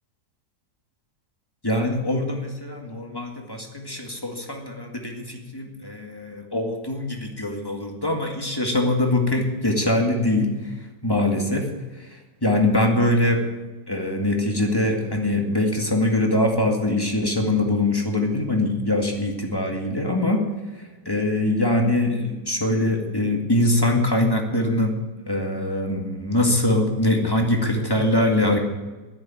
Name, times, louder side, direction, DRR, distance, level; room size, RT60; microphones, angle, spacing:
voice 1, 1.6-10.5 11.0-11.7 12.0-13.4 13.9-20.4 21.1-25.0 25.3-28.6, left 1 dB, 15° left, 1 dB, 1.8 m, -23 dB
10.5 x 10.0 x 9.0 m, 1.2 s
omnidirectional pair, 1.8 m